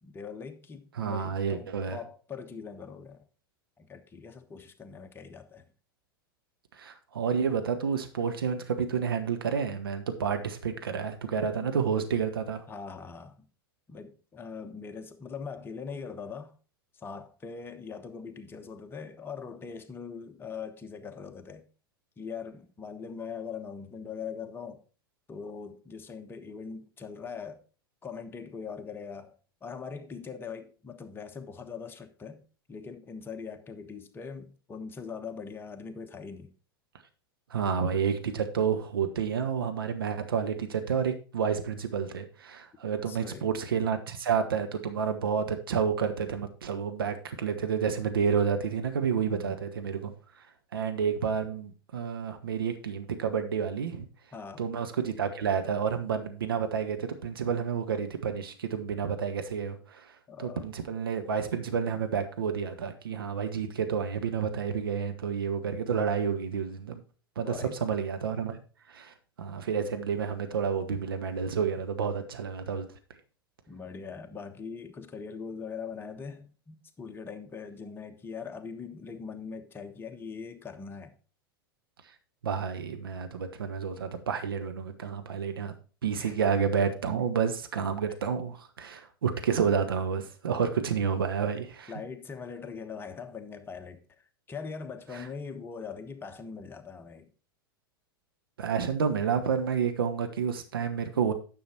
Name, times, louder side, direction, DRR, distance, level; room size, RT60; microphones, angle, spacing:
voice 1, 0.0-3.2 3.8-5.7 12.7-13.5 13.9-16.5 16.9-21.7 22.2-24.8 25.3-27.6 28.0-36.5 43.1-43.5 49.2-49.6 54.3-54.7 60.3-60.7 67.4-67.8 73.7-81.1 86.2-86.4 91.9-97.3, left 5 dB, 20° left, 1.2 m, -41 dB
voice 2, 1.0-2.0 6.7-12.6 37.5-50.1 50.7-54.1 54.6-67.0 67.4-68.6 68.9-72.9 82.4-85.7 86.0-91.9 95.1-95.2 98.6-101.3, right 6 dB, 75° right, 1.2 m, -30 dB
9.9 x 6.2 x 4.2 m
figure-of-eight pair, 90°, 12 cm